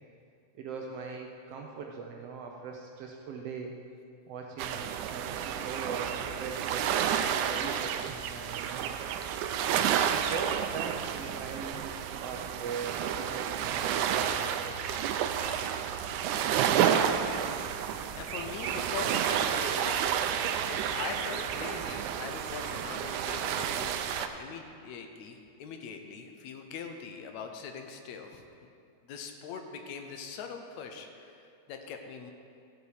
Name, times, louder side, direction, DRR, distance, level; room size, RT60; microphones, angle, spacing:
voice 1, 0.5-3.7 4.3-6.9 7.2-8.9 9.6-14.7, right 5 dB, 70° right, 1 dB, 1.5 m, -40 dB
sound 1, 4.6-24.3, right 9 dB, 90° right, 2.0 m, -30 dB
voice 2, 18.2-20.2 20.7-28.4 29.0-32.3, left 6 dB, 75° left, 5 dB, 2.0 m, -42 dB
14.5 x 8.0 x 4.9 m, 2.4 s
omnidirectional pair, 3.4 m